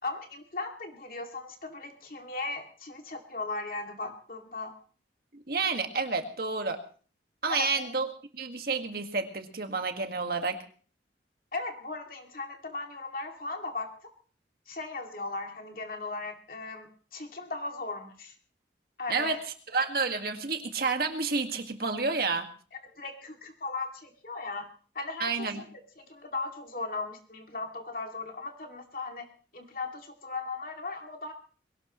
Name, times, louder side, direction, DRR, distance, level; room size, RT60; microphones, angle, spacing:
voice 1, 0.0-4.7 7.5-7.9 11.5-13.9 14.7-18.3 19.0-19.4 22.7-24.7 24.9-25.7 26.0-29.3 29.5-31.3, left 3 dB, 50° left, 3 dB, 2.5 m, -37 dB
voice 2, 5.3-6.8 7.4-10.6 19.1-19.4 19.7-22.5 25.2-25.6, right 4 dB, 55° right, 5 dB, 1.9 m, -30 dB
22.0 x 18.0 x 3.1 m, 0.41 s
head